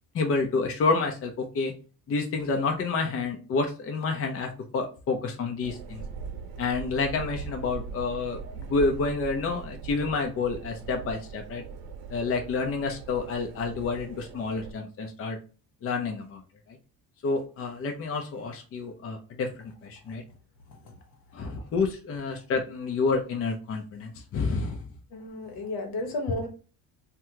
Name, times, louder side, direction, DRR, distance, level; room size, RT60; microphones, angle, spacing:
voice 1, 0.1-1.7 2.1-6.0 6.6-11.6 12.1-15.4 15.8-16.4 16.7-16.8 17.2-19.5 19.8-20.2 21.3-24.8, left 4 dB, 35° left, 4 dB, 0.6 m, -29 dB
sound 1, 5.6-14.7, right 5 dB, 65° right, 0.7 m, -40 dB
voice 2, 25.1-26.5, left 2 dB, 70° left, 5 dB, 1.0 m, -34 dB
2.8 x 2.3 x 3.5 m, 0.37 s
cardioid pair, 100°, 39 cm